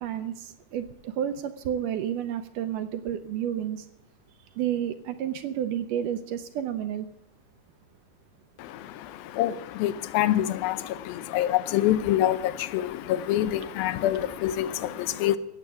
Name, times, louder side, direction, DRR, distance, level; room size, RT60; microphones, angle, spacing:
voice 1, 0.0-3.9 4.6-7.1 13.3-14.2 14.5-15.3, right 10 dB, 80° right, 2.0 m, -31 dB
voice 2, 8.6-15.4, left 13 dB, 85° left, 2.5 m, -26 dB
15.5 x 8.3 x 9.0 m
omnidirectional pair, 4.2 m